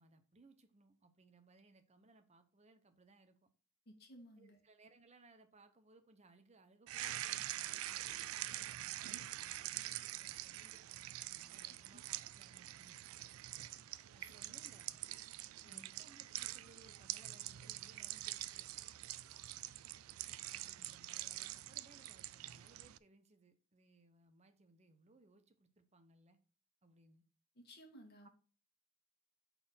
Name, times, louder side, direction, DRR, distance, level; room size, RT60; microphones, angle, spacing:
voice 1, 0.0-3.5 4.4-13.0 14.1-15.1 15.6-18.7 20.5-26.4 26.8-27.2 28.2-28.3, right 3 dB, 35° right, 0.9 m, -66 dB
voice 2, 3.9-4.6 11.9-12.0 14.2-14.4 15.6-15.9 27.6-28.3, equal, 50° left, 1.8 m, -58 dB
sound 1, 6.9-23.0, right 15 dB, 80° right, 0.3 m, -45 dB
5.7 x 4.3 x 5.6 m
head